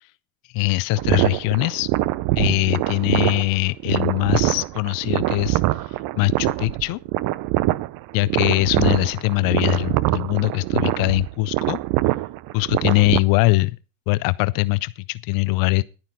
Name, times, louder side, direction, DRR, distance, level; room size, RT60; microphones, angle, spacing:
voice 1, 0.5-1.9 2.4-7.0 8.1-11.8 12.5-13.8 14.1-15.8, left 22 dB, 55° left, 0.5 m, -22 dB
sound 1, 1.0-13.2, right 17 dB, 50° right, 0.7 m, -23 dB
11.5 x 10.0 x 5.4 m
supercardioid pair, 130°, 42 cm